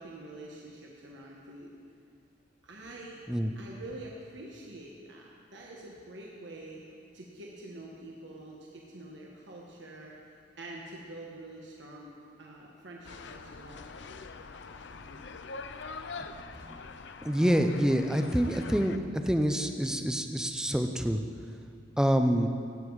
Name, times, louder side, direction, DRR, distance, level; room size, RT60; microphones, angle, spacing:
voice 1, 0.0-1.7 2.6-3.2 3.5-6.8 7.1-13.9 15.0-15.3, right 2 dB, 70° right, -2 dB, 1.4 m, -46 dB
sound 1, 13.0-19.0, left 4 dB, 65° left, 0.6 m, -44 dB
voice 2, 17.2-21.2 22.0-22.5, equal, 5° right, 6 dB, 0.6 m, -27 dB
16.5 x 9.2 x 4.8 m, 2.3 s
head